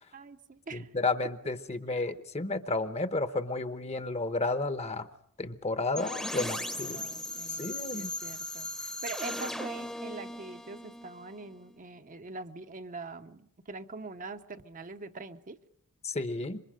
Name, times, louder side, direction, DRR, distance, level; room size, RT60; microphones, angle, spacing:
voice 1, 0.1-0.9 1.9-2.0 6.3-15.6, right 3 dB, 35° right, 8 dB, 0.8 m, -44 dB
voice 2, 0.7-5.1 5.4-7.0 7.6-8.1 16.0-16.6, left 3 dB, 30° left, 10 dB, 1.0 m, -32 dB
sound 1, 6.0-11.8, left 1 dB, 5° left, 0.9 m, -38 dB
27.0 x 24.0 x 5.1 m, 0.67 s
head